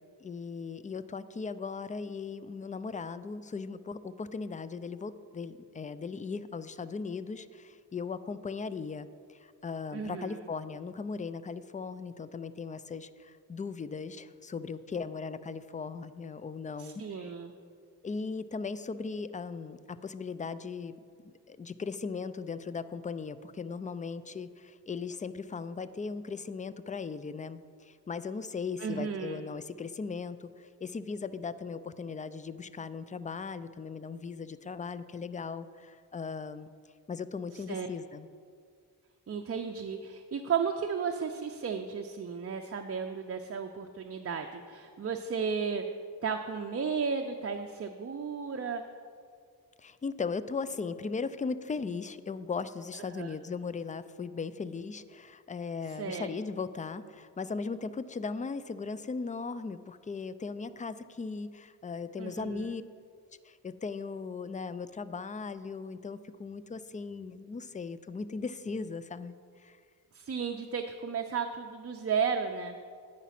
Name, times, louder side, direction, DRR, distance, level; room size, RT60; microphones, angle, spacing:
voice 1, 0.2-17.3 18.0-20.9 21.2-36.7 37.1-38.3 49.8-62.8 63.4-69.4 69.6-69.8, left 4 dB, 20° left, 14 dB, 0.3 m, -38 dB
voice 2, 9.9-10.4 16.8-17.5 28.8-29.4 37.5-37.9 39.3-45.8 46.2-48.8 53.1-53.3 55.9-56.3 62.2-62.7 70.1-72.8, right 6 dB, 35° right, 5 dB, 0.5 m, -34 dB
9.2 x 5.0 x 5.7 m, 2.2 s
cardioid pair, 50°, 42 cm